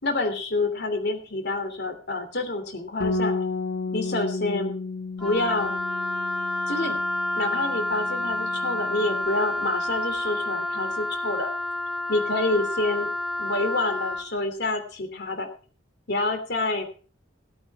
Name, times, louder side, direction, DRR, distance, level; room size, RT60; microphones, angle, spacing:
voice 1, 0.0-3.4 3.9-4.7 5.2-5.7 6.7-7.0 7.4-11.5 12.1-13.1 13.4-15.5 16.1-16.9, left 2 dB, 60° left, 7 dB, 3.0 m, -27 dB
Bass guitar, 3.0-9.3, left 3 dB, 75° left, 1.5 m, -32 dB
Wind instrument woodwind instrument, 5.2-14.3, left 1 dB, ahead, 2.3 m, -29 dB
17.0 x 8.7 x 4.6 m, 0.39 s
head